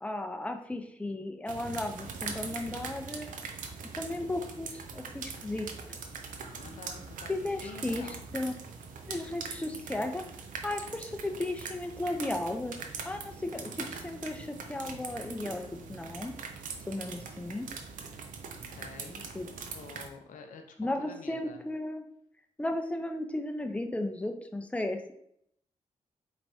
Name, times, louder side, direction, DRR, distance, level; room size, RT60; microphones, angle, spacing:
voice 1, 0.0-3.3 3.8-6.0 7.3-8.5 9.1-10.2 10.6-12.7 13.0-15.6 15.9-16.3 16.9-17.7 19.3-19.5 20.8-22.0 22.6-25.1, left 1 dB, 10° left, 5 dB, 0.6 m, -35 dB
sound 1, 1.5-20.1, right 5 dB, 80° right, 0.5 m, -42 dB
voice 2, 6.5-8.3 18.5-19.3 19.7-21.6, left 5 dB, 75° left, 4 dB, 0.6 m, -48 dB
4.4 x 3.0 x 2.7 m, 0.70 s
supercardioid pair, 40°, 14 cm